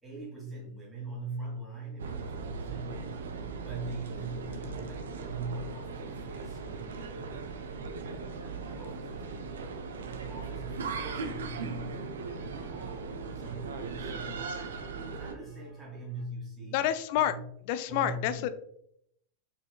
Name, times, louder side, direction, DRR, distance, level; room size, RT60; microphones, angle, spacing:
voice 1, 0.0-3.2 3.6-9.2 10.1-16.9 17.3-17.4 17.9-18.5, right 2 dB, 10° right, -5 dB, 1.9 m, -42 dB
sound 1, 2.0-15.4, right 4 dB, 65° right, 0.5 m, -38 dB
sound 2, 5.9-16.2, right 3 dB, 80° right, 1.4 m, -60 dB
voice 2, 16.7-17.4 17.7-18.5, left 11 dB, 45° left, 12 dB, 0.3 m, -28 dB
4.9 x 4.7 x 2.3 m, 0.71 s
figure-of-eight pair, 90°, 0 cm